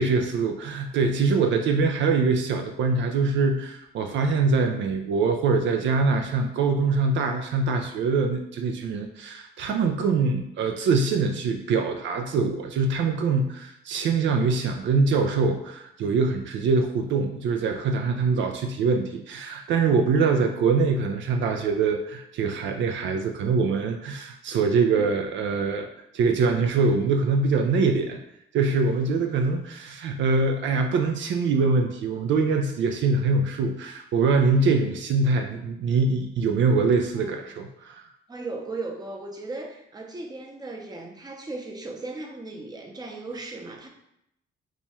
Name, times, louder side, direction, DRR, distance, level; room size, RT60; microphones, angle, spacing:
voice 1, 0.0-25.9 26.1-28.2 28.5-38.0, right 4 dB, 70° right, 4 dB, 0.4 m, -23 dB
voice 2, 37.2-37.5 38.3-43.9, right 3 dB, 20° right, 0 dB, 0.7 m, -37 dB
2.9 x 2.3 x 4.1 m, 0.79 s
cardioid pair, 90°, 20 cm